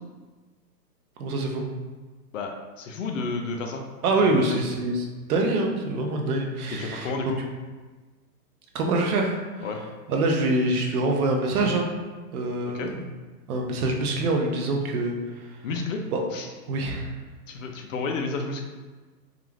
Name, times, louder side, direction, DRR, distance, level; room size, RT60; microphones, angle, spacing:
voice 1, 1.2-1.6 4.0-7.3 8.7-9.4 10.1-11.9 12.3-13.0 13.5-15.5 16.1-16.2 16.7-17.1, right 2 dB, 60° right, 1 dB, 0.7 m, -25 dB
voice 2, 2.3-3.8 4.2-4.4 6.7-7.4 9.6-9.8 12.7-12.9 15.6-16.0 16.3-16.5 17.5-18.6, left 3 dB, 55° left, 3 dB, 0.5 m, -31 dB
2.4 x 2.3 x 3.1 m, 1.3 s
hypercardioid pair, 140°, 49 cm